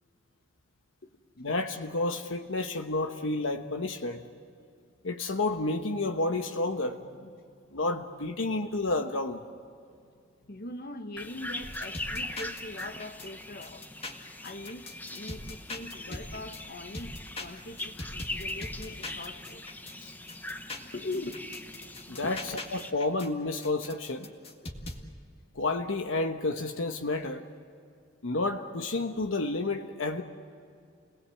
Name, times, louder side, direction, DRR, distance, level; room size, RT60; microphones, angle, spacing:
voice 1, 1.4-4.3 5.0-7.3 7.7-9.4 16.1-16.2 20.0-20.1 22.1-22.4 22.7-24.3 25.5-27.5 28.2-30.2, left 2 dB, 80° left, 5 dB, 1.1 m, -30 dB
voice 2, 10.5-13.9 14.4-19.7 20.9-21.5 22.2-22.3, left 2 dB, 55° left, 8 dB, 1.4 m, -41 dB
sound 1, 11.2-22.9, left 1 dB, 10° left, 0.9 m, -41 dB
sound 2, 11.6-13.3 13.6-16.6 16.9-19.9 20.3-23.3 23.6-25.0, left 2 dB, 30° left, 2.0 m, -41 dB
29.5 x 19.5 x 7.9 m, 2.4 s
head